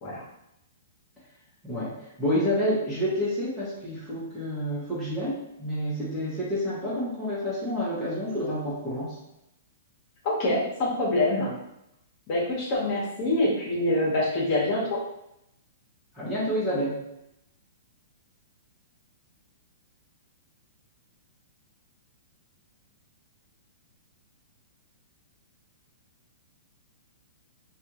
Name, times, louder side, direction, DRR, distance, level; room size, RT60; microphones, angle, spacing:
voice 1, 2.2-9.2 16.1-17.0, equal, ahead, -11 dB, 1.0 m, -29 dB
voice 2, 10.2-11.5 12.3-15.0, left 1 dB, 35° left, -4 dB, 1.1 m, -25 dB
3.3 x 2.4 x 2.9 m, 0.84 s
hypercardioid pair, 155°, 0 cm